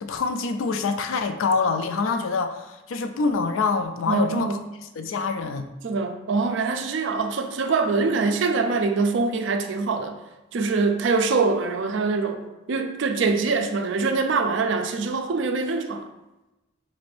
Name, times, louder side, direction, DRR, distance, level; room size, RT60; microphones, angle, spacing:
voice 1, 0.0-4.6 5.0-5.7, left 4 dB, 80° left, 8 dB, 0.4 m, -25 dB
voice 2, 4.1-4.5 5.8-10.2 10.5-12.4 12.7-16.0, right 4 dB, 65° right, 6 dB, 0.4 m, -24 dB
4.1 x 2.5 x 3.2 m, 1.0 s
head